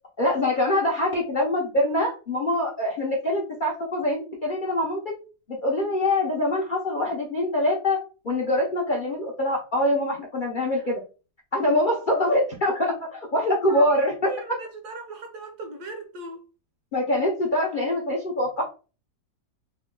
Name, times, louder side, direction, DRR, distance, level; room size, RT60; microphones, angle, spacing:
voice 1, 0.2-5.1 5.6-8.0 8.2-11.0 11.5-14.3 16.9-18.6, left 1 dB, 55° left, 0.5 m, -24 dB
voice 2, 13.7-16.5, right 2 dB, 65° right, 1.4 m, -39 dB
3.4 x 2.2 x 3.7 m
omnidirectional pair, 1.9 m